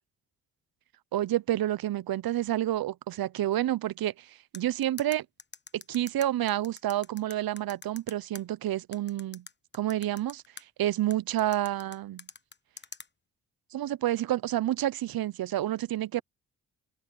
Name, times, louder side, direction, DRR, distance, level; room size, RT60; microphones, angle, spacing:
voice 1, 1.1-5.3 5.7-9.4 9.7-10.4 10.8-12.2 13.7-16.2, right 13 dB, 60° right, 0.9 m, -29 dB
sound 1, 4.5-8.4 8.9-10.6 11.1-13.1, left 4 dB, 25° left, 1.3 m, -45 dB
supercardioid pair, 50°, 40 cm